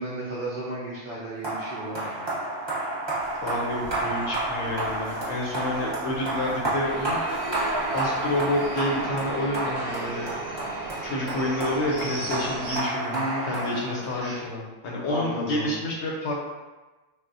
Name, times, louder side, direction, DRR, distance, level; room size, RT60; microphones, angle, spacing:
voice 1, 0.0-2.4 13.1-13.8 14.2-14.4 15.1-15.8, right 1 dB, 55° right, -7 dB, 0.6 m, -33 dB
sound 1, 1.4-14.5, right 2 dB, 25° right, 0.8 m, -31 dB
sound 2, 3.2-9.0, right 1 dB, ahead, 0.9 m, -39 dB
voice 2, 3.4-7.2 7.9-10.3 11.0-16.3, left 1 dB, 65° left, -3 dB, 0.9 m, -29 dB
sound 3, 6.8-12.8, right 3 dB, 70° right, 1.0 m, -36 dB
3.4 x 2.3 x 2.5 m, 1.2 s
omnidirectional pair, 1.3 m